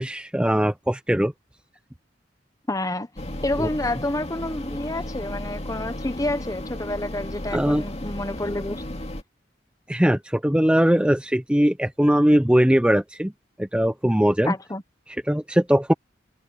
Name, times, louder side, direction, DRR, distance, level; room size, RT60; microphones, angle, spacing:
voice 1, 0.0-1.3 3.6-3.7 7.5-7.8 9.9-13.3 13.6-14.5 15.3-15.9, equal, 5° right, 0.6 m, -20 dB
voice 2, 2.7-3.1 3.4-8.8 14.4-14.8, left 2 dB, 20° left, 1.2 m, -29 dB
sound 1, 3.2-9.2, left 1 dB, 35° left, 2.4 m, -34 dB
head